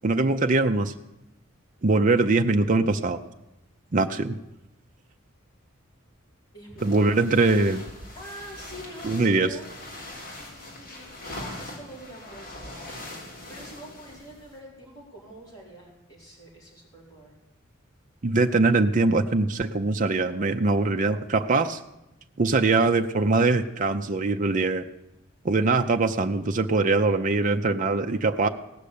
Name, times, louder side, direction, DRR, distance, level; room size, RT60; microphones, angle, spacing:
voice 1, 0.0-0.9 1.8-3.2 3.9-4.4 6.8-7.8 9.0-9.5 18.2-21.8 22.4-24.8 25.4-28.5, right 3 dB, 40° right, 5 dB, 0.6 m, -22 dB
voice 2, 6.5-7.1 8.1-9.7 10.3-13.0 13.5-17.4, equal, 20° left, -4 dB, 4.9 m, -45 dB
sound 1, 6.8-14.6, left 1 dB, 45° left, 3.7 m, -42 dB
17.0 x 6.7 x 8.4 m, 0.92 s
head